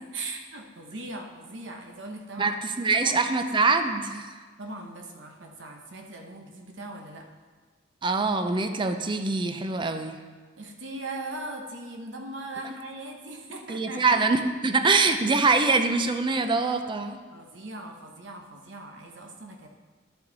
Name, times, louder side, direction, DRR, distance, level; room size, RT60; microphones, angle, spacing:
voice 1, 0.0-2.6 3.0-3.2 4.6-7.3 10.6-14.2 17.3-19.7, right 2 dB, 70° right, 2 dB, 1.0 m, -39 dB
voice 2, 2.4-4.3 8.0-10.2 13.7-17.2, right 3 dB, 25° right, 8 dB, 0.5 m, -24 dB
11.0 x 5.8 x 4.0 m, 1.5 s
head